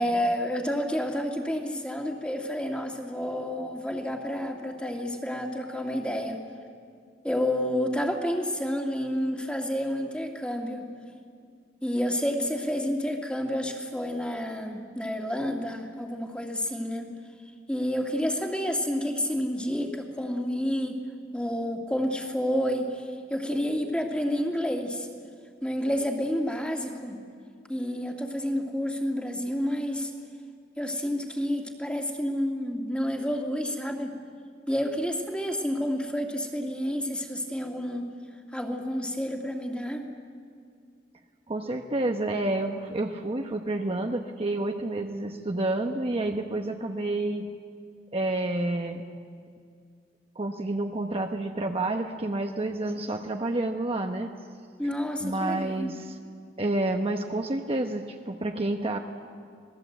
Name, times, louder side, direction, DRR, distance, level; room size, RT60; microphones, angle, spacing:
voice 1, 0.0-6.4 7.2-10.9 11.8-17.1 17.7-21.0 21.3-25.1 25.6-27.2 27.7-30.1 30.8-34.2 34.7-38.1 38.5-40.1 54.8-55.9, equal, 5° left, 2 dB, 2.2 m, -29 dB
voice 2, 41.5-47.5 48.1-49.0 50.3-54.3 55.2-56.2 56.6-59.0, right 2 dB, 35° right, 3 dB, 1.0 m, -29 dB
27.0 x 19.5 x 8.0 m, 2.2 s
head